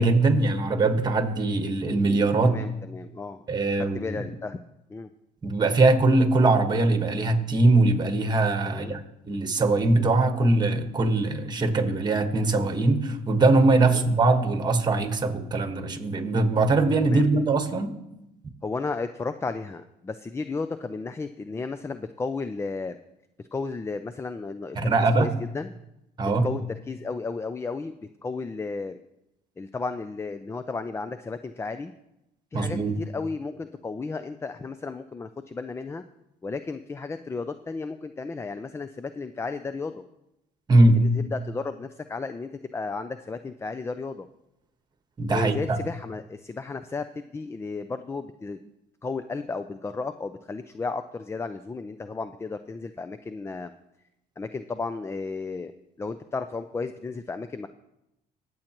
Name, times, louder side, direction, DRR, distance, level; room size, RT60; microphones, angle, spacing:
voice 1, 0.0-2.6 3.5-4.2 5.4-9.0 9.3-17.9 24.7-25.3 26.2-26.5 32.5-32.9 40.7-41.0 45.2-45.8, right 2 dB, 25° right, 6 dB, 1.4 m, -21 dB
voice 2, 2.4-3.4 3.7-4.6 4.9-5.1 8.6-9.0 13.8-14.1 17.0-17.3 18.6-23.0 23.4-24.9 25.2-25.8 26.4-26.6 26.9-27.9 28.2-29.0 29.6-31.9 32.5-36.0 36.4-40.0 40.9-44.3 45.3-48.7 49.0-53.7 54.4-55.7 56.0-57.7, left 4 dB, 15° left, 11 dB, 0.4 m, -33 dB
23.0 x 7.8 x 3.0 m, 0.89 s
cardioid pair, 110°, 17 cm